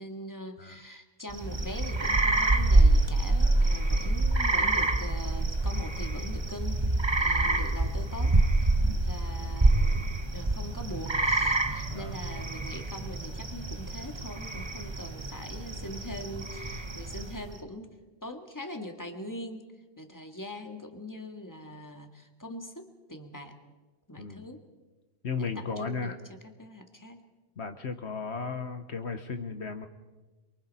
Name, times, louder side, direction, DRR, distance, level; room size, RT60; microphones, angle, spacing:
voice 1, 0.0-8.4 8.9-10.0 10.3-17.9 18.2-19.7 20.0-23.5 24.1-24.6 25.4-26.2 26.4-27.2, left 1 dB, 15° left, 4 dB, 1.8 m, -42 dB
sound 1, 1.3-17.5, right 2 dB, 25° right, 1.0 m, -26 dB
voice 2, 7.3-7.7 11.9-12.2 24.2-24.5 25.2-26.2 27.6-29.9, left 5 dB, 65° left, 8 dB, 1.2 m, -35 dB
28.0 x 23.5 x 4.2 m, 1.2 s
omnidirectional pair, 1.3 m